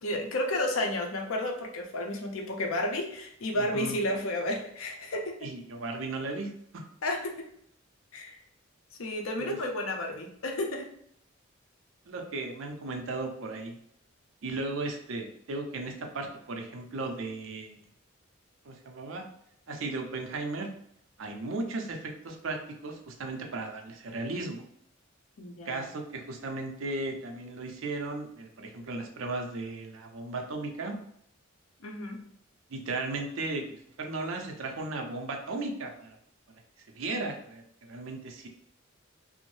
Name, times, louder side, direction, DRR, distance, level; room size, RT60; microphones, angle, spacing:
voice 1, 0.0-5.5 7.0-7.5 8.1-8.4 9.0-10.9 25.4-25.9 31.8-32.2, left 1 dB, 90° left, 2 dB, 0.6 m, -32 dB
voice 2, 3.5-4.0 5.4-6.8 9.4-9.6 12.1-13.8 14.4-17.8 18.6-19.2 19.7-20.7 21.2-24.6 25.7-31.0 32.7-36.2 36.9-38.5, right 2 dB, 70° right, 2 dB, 0.5 m, -36 dB
2.6 x 2.0 x 3.1 m, 0.70 s
head